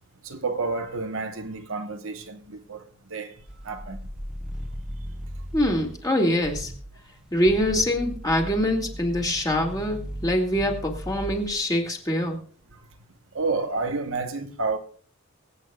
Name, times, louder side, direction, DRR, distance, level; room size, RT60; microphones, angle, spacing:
voice 1, 0.2-3.3 3.6-4.0 13.3-14.8, right 3 dB, 65° right, 1.1 m, -30 dB
sound 1, 3.5-6.1 6.4-6.9 7.3-11.6, equal, 5° right, 0.5 m, -37 dB
voice 2, 5.5-6.7 7.3-12.4, left 1 dB, 15° left, 2.0 m, -24 dB
24.0 x 8.4 x 2.3 m
head